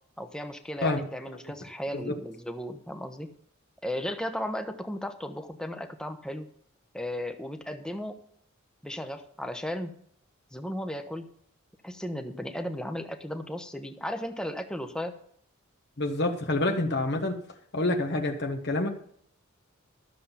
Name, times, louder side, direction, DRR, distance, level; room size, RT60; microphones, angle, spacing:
voice 1, 0.2-3.3 3.8-6.5 6.9-8.2 8.8-9.9 10.5-11.3 11.8-15.1, equal, 5° left, 7 dB, 0.9 m, -35 dB
voice 2, 16.0-17.4 17.7-18.9, left 2 dB, 55° left, 2 dB, 1.2 m, -27 dB
13.0 x 7.2 x 5.6 m, 0.64 s
head